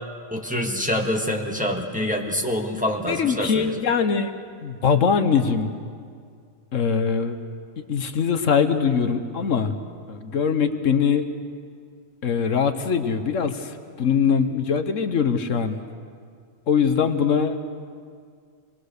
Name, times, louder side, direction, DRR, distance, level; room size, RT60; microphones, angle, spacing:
voice 1, 0.3-3.7, left 1 dB, 5° right, 0 dB, 1.7 m, -26 dB
voice 2, 3.1-4.3 4.6-5.7 6.7-7.4 7.9-9.7 10.1-11.3 12.2-15.8 16.7-17.6, left 6 dB, 75° left, 8 dB, 1.4 m, -22 dB
26.0 x 20.5 x 6.6 m, 2.1 s
omnidirectional pair, 1.3 m